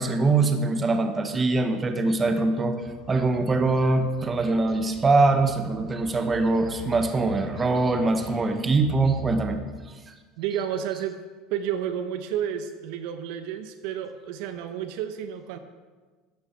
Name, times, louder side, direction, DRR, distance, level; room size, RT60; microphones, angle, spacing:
voice 1, 0.0-2.8 3.1-9.6 10.1-10.2, right 3 dB, 20° right, 7 dB, 1.0 m, -23 dB
sound 1, 2.8-8.5, left 2 dB, 20° left, 3.4 m, -44 dB
voice 2, 10.4-11.2 11.5-15.6, right 9 dB, 70° right, 9 dB, 0.8 m, -31 dB
12.5 x 8.4 x 4.5 m, 1.4 s
supercardioid pair, 115°, 0 cm